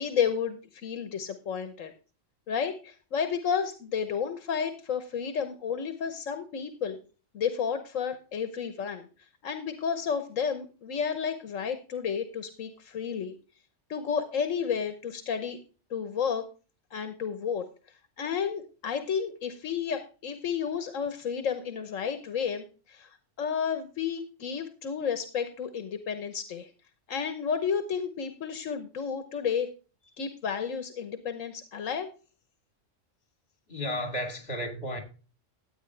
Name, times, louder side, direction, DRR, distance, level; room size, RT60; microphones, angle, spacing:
voice 1, 0.0-1.9 2.5-7.0 7.3-9.1 9.4-13.3 13.9-15.6 15.9-16.4 16.9-17.7 18.2-26.7 27.1-29.7 30.2-32.1, left 7 dB, 85° left, 1.4 m, -31 dB
voice 2, 33.7-35.0, equal, 50° left, 3.2 m, -33 dB
13.0 x 9.0 x 3.3 m
omnidirectional pair, 1.3 m